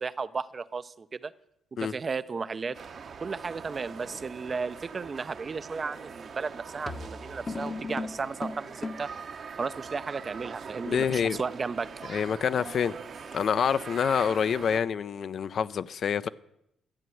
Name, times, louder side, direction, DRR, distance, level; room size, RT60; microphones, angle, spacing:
voice 1, 0.0-1.3 1.8-2.8 3.2-9.1 9.6-11.9, right 4 dB, 35° right, 0.5 m, -34 dB
sound 1, 2.7-14.8, right 6 dB, 50° right, 0.9 m, -43 dB
sound 2, 6.0-6.2 6.9-9.2, left 3 dB, 30° left, 0.8 m, -37 dB
voice 2, 10.8-11.4 12.1-13.0 13.3-16.3, left 7 dB, 55° left, 0.4 m, -27 dB
12.5 x 7.8 x 7.7 m
cardioid pair, 90°, 0 cm